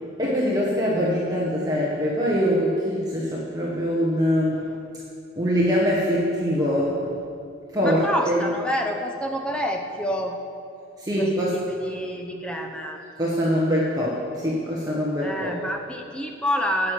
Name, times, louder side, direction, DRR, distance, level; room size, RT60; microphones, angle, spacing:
voice 1, 0.2-4.6 5.4-7.1 7.7-8.4 11.0-11.5 13.2-15.6, equal, 20° right, -5 dB, 1.4 m, -23 dB
voice 2, 7.8-10.4 11.2-13.0 15.2-16.9, equal, 5° left, 2 dB, 0.8 m, -28 dB
9.7 x 7.7 x 8.3 m, 2.4 s
head